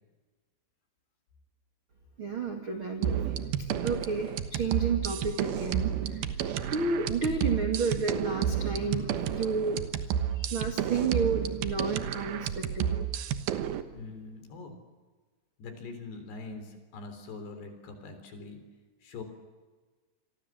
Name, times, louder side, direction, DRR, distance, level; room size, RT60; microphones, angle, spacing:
voice 1, 2.2-3.3 3.8-6.3 6.7-9.8 10.3-13.1, right 4 dB, 45° right, 4 dB, 1.7 m, -31 dB
sound 1, 3.0-13.8, right 9 dB, 70° right, 2.5 m, -31 dB
voice 2, 13.9-14.7 15.6-18.6 19.0-19.2, left 3 dB, 60° left, 7 dB, 5.6 m, -43 dB
28.5 x 23.0 x 7.6 m, 1.3 s
omnidirectional pair, 5.7 m